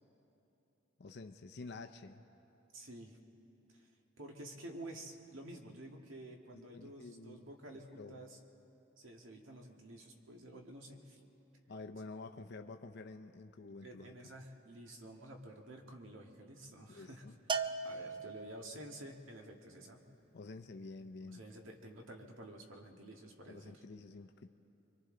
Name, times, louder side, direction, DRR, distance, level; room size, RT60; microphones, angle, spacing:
voice 1, 1.0-2.2 6.5-7.5 7.9-8.2 11.7-14.1 16.9-17.3 20.3-21.5 23.5-24.5, left 3 dB, 60° left, 6 dB, 0.6 m, -49 dB
voice 2, 2.7-3.2 3.7-3.9 4.2-8.4 9.0-11.2 13.8-17.2 17.8-20.1 21.2-23.8, right 1 dB, 85° right, 2 dB, 1.9 m, -51 dB
Bell, 17.5-18.9, right 4 dB, 25° right, 0.5 m, -38 dB
29.5 x 23.5 x 3.8 m, 3.0 s
head